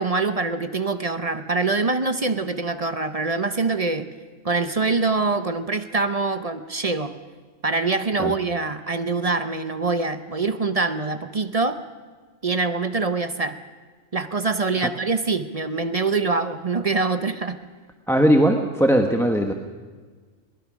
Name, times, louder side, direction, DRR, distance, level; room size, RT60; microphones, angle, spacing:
voice 1, 0.0-4.1 4.4-7.1 7.6-11.8 12.4-13.5 14.1-17.6, right 3 dB, 35° right, 10 dB, 0.7 m, -24 dB
voice 2, 18.1-19.5, equal, ahead, 4 dB, 1.0 m, -19 dB
22.5 x 19.5 x 6.3 m, 1.5 s
omnidirectional pair, 1.4 m